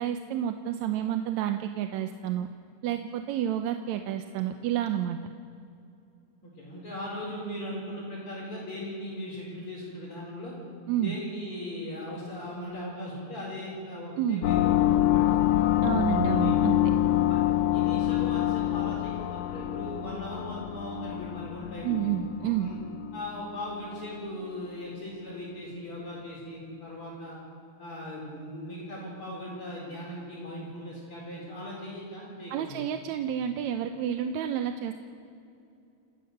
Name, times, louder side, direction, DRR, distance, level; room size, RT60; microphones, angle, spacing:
voice 1, 0.0-2.5 2.8-5.2 10.9-11.2 14.2-14.5 15.8-16.8 21.8-22.7 32.5-34.9, right 10 dB, 75° right, 7 dB, 2.0 m, -29 dB
voice 2, 6.4-10.5 11.0-15.8 16.3-16.6 17.2-17.4 17.7-22.0 22.4-22.8 23.1-27.4 27.8-32.8, left 1 dB, 45° left, -5 dB, 5.2 m, -39 dB
sound 1, 14.4-23.6, left 13 dB, 75° left, 1.5 m, -26 dB
28.5 x 16.5 x 6.6 m, 2.6 s
omnidirectional pair, 3.4 m